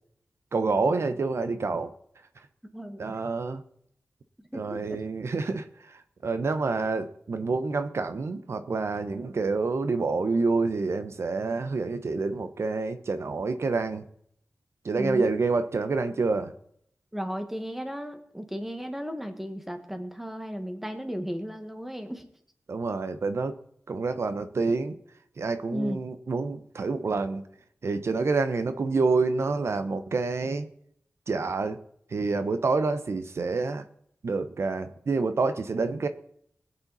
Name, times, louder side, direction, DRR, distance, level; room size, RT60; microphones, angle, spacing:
voice 1, 0.5-1.9 3.0-3.6 4.5-5.7 6.2-14.0 14.8-16.5 22.7-23.6 23.9-25.0 25.4-27.4 27.8-30.7 31.3-31.8 32.1-33.8 34.2-36.1, right 3 dB, 70° right, 10 dB, 0.9 m, -27 dB
voice 2, 2.6-3.2 4.5-5.0 15.0-15.4 17.1-22.2 25.7-26.0, equal, 5° right, 6 dB, 1.6 m, -35 dB
21.0 x 8.7 x 4.2 m, 0.67 s
wide cardioid pair, 110°, 5 cm